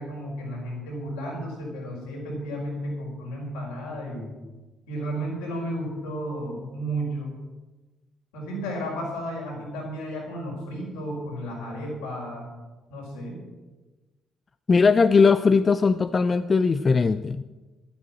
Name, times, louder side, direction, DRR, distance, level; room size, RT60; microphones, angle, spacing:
voice 1, 0.0-4.3 4.9-7.4 8.3-12.5 12.9-13.4, equal, 80° left, -2 dB, 5.5 m, -33 dB
voice 2, 14.7-17.4, left 5 dB, 40° left, 12 dB, 0.6 m, -19 dB
12.5 x 11.5 x 7.7 m, 1.2 s
hypercardioid pair, 45°, 0 cm